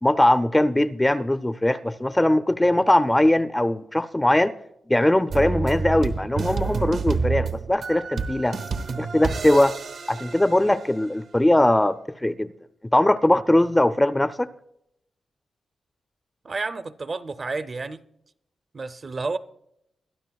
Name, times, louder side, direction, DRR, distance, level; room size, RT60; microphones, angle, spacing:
voice 1, 0.0-4.5 4.9-8.6 9.0-9.7 10.1-12.5 12.9-14.5, left 1 dB, 10° left, 0.4 m, -20 dB
sound 1, 5.3-11.1, right 4 dB, 80° right, 1.0 m, -29 dB
voice 2, 16.4-18.0 18.7-19.4, right 3 dB, 40° right, 0.5 m, -30 dB
22.5 x 12.0 x 2.3 m
cardioid pair, 105°, 0 cm